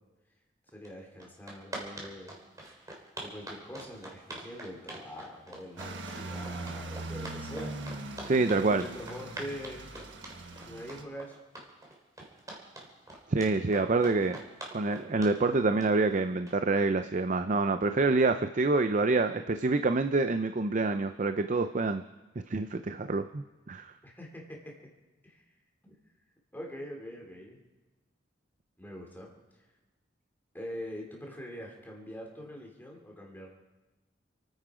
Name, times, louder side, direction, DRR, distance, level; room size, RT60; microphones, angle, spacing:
voice 1, 0.7-2.3 3.2-7.7 8.7-9.9 10.5-11.4 24.0-24.8 25.2-25.4 25.8-26.0 26.5-27.6 28.8-29.3 30.5-33.5, equal, 10° left, -1 dB, 3.1 m, -43 dB
sound 1, 0.8-0.9 1.2-16.8, right 1 dB, 20° right, 3.3 m, -44 dB
sound 2, 5.8-11.0, right 2 dB, 70° right, 1.4 m, -41 dB
voice 2, 8.2-8.8 13.3-14.4 14.7-22.0 22.5-23.9, right 3 dB, 40° right, 9 dB, 0.5 m, -27 dB
28.5 x 9.5 x 5.0 m, 1.1 s
head